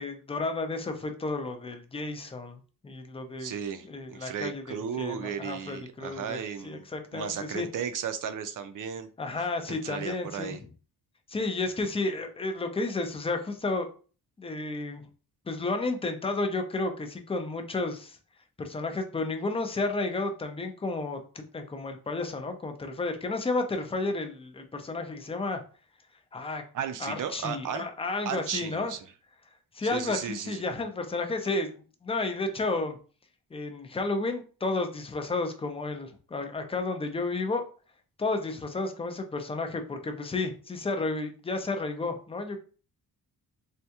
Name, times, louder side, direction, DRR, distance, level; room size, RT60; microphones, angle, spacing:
voice 1, 0.0-3.5 3.9-6.4 6.6-7.7 9.2-10.6 11.3-13.9 14.4-15.0 15.5-18.2 18.6-25.6 26.3-26.6 27.0-28.9 29.7-31.7 32.0-33.0 33.5-37.6 38.2-42.6, left 3 dB, 15° left, 6 dB, 0.4 m, -32 dB
voice 2, 3.4-6.9 7.1-9.1 9.4-10.6 26.7-27.9 28.3-29.0 29.8-30.6, right 7 dB, 55° right, 10 dB, 0.5 m, -35 dB
3.5 x 2.2 x 2.8 m, 0.38 s
wide cardioid pair, 125°, 39 cm